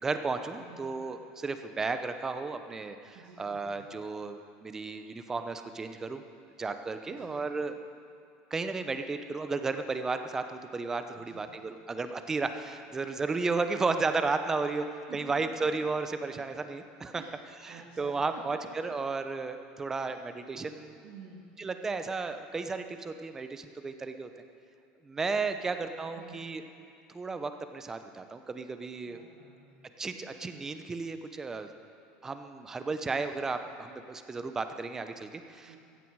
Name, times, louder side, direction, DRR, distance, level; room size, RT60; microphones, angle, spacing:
voice 1, 0.0-6.2 6.6-7.7 8.5-14.8 15.1-17.2 17.6-18.6 18.8-21.0 21.6-24.3 25.0-26.6 27.1-29.2 30.0-31.7 32.2-35.7, right 4 dB, 15° right, 8 dB, 0.7 m, -33 dB
voice 2, 0.6-0.9 3.1-3.9 7.1-7.4 11.2-11.5 14.8-15.5 16.4-16.5 17.1-17.3 17.7-18.4 18.9-19.0 19.9-20.2 21.0-21.4 25.5-26.5 29.1-29.8 35.6-35.8, right 6 dB, 65° right, -5 dB, 2.2 m, -51 dB
15.5 x 15.0 x 4.7 m, 2.6 s
cardioid pair, 160°, 3 cm